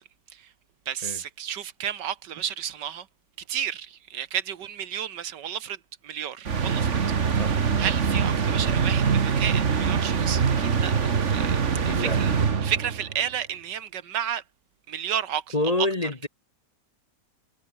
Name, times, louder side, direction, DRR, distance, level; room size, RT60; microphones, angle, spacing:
voice 1, 0.9-3.1 3.5-7.0 7.2-11.6 11.9-12.3 12.6-14.4 14.9-15.5, right 9 dB, 80° right, 1.8 m, -32 dB
sound 1, 6.4-13.1, right 6 dB, 45° right, 1.7 m, -24 dB
voice 2, 11.8-12.2 15.5-16.3, left 2 dB, 25° left, 1.3 m, -27 dB
omnidirectional pair, 1.8 m